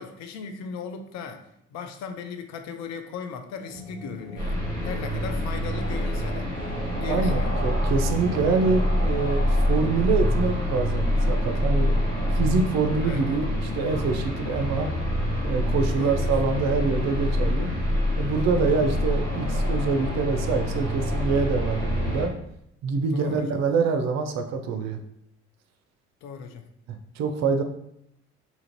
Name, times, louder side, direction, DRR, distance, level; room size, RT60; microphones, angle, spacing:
voice 1, 0.0-6.5 7.0-7.6 13.0-13.4 16.0-16.3 23.1-23.5 26.2-26.6, left 6 dB, 50° left, 6 dB, 0.5 m, -37 dB
sound 1, 3.6-9.2, left 2 dB, 15° left, 1.2 m, -40 dB
sound 2, 4.4-22.3, equal, 90° left, 1.0 m, -26 dB
voice 2, 7.1-11.9 12.3-14.9 15.4-17.7 18.2-22.3 22.8-25.0 26.9-27.6, right 4 dB, 50° right, 6 dB, 0.5 m, -25 dB
2.8 x 2.5 x 2.9 m, 0.75 s
figure-of-eight pair, 45°, 35 cm